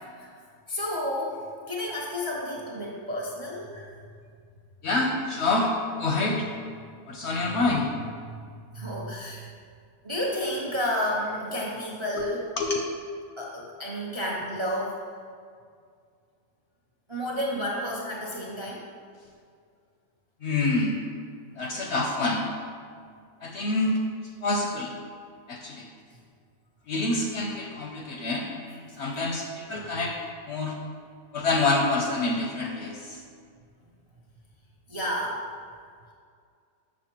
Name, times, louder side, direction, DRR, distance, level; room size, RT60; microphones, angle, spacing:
voice 1, 0.7-1.4 1.7-3.9 8.3-9.5 10.0-12.4 13.4-15.0 17.1-18.8 34.9-35.4, equal, 50° right, -3 dB, 0.3 m, -31 dB
voice 2, 4.8-6.5 7.1-7.9 12.1-12.3 12.6-12.8 20.4-21.0 21.6-22.5 23.4-24.0 24.4-24.9 25.5-25.9 26.9-30.8 31.3-33.2, left 2 dB, 65° left, 1 dB, 0.7 m, -27 dB
6.4 x 6.3 x 2.9 m, 2.2 s
omnidirectional pair, 1.6 m